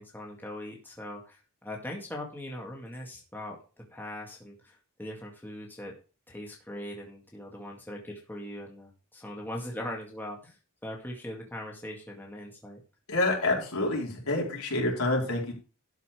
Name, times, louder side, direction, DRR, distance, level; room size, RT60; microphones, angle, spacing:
voice 1, 0.0-3.6 3.9-5.9 6.3-10.6 10.8-12.8, left 1 dB, 10° left, -1 dB, 2.0 m, -40 dB
voice 2, 13.1-15.5, left 2 dB, 75° left, -1 dB, 4.3 m, -27 dB
12.5 x 5.7 x 5.0 m, 0.35 s
head